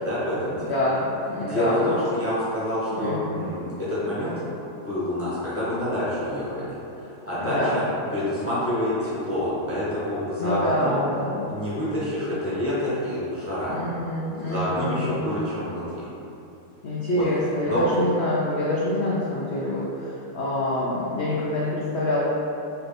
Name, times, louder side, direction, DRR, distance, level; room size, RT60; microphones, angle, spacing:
voice 1, 0.0-0.8 1.4-4.3 4.7-7.8 8.1-11.0 11.5-13.8 14.4-16.0 17.2-17.3 17.7-17.8, left 1 dB, 15° left, -11 dB, 0.6 m, -27 dB
voice 2, 0.5-1.9 3.0-3.5 7.4-7.8 10.4-11.5 13.7-15.4 16.8-22.2, left 1 dB, 90° left, -7 dB, 0.5 m, -26 dB
4.4 x 2.6 x 3.3 m, 2.8 s
omnidirectional pair, 1.8 m